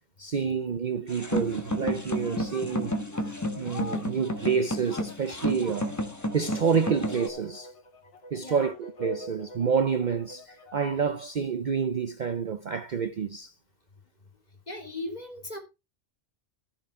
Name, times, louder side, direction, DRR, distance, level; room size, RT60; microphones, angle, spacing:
voice 1, 0.2-2.9 3.6-5.9 6.3-7.7 8.3-13.5, right 6 dB, 50° right, 0.7 m, -28 dB
sound 1, 1.1-7.3, equal, 15° left, 1.2 m, -32 dB
sound 2, 5.5-11.1, equal, 75° left, 2.3 m, -45 dB
voice 2, 8.3-8.7 14.7-15.6, left 2 dB, 35° left, 3.2 m, -38 dB
13.5 x 7.2 x 4.6 m
omnidirectional pair, 1.2 m